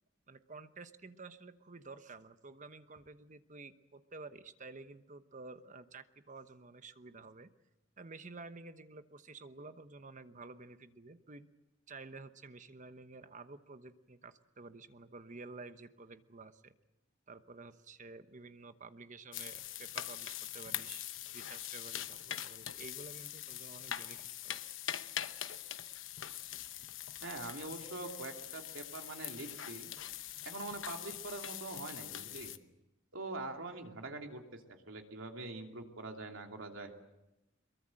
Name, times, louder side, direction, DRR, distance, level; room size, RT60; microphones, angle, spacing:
voice 1, 0.3-7.5 8.0-11.5 11.9-16.7 17.3-21.0 21.3-24.6, right 3 dB, 40° right, 11 dB, 1.1 m, -51 dB
sound 1, 19.3-32.6, left 11 dB, 70° left, 1.0 m, -43 dB
voice 2, 27.2-29.9 30.4-32.5 33.1-34.6 34.9-36.9, right 2 dB, 85° right, 3 dB, 2.9 m, -44 dB
23.5 x 22.5 x 7.7 m, 0.96 s
head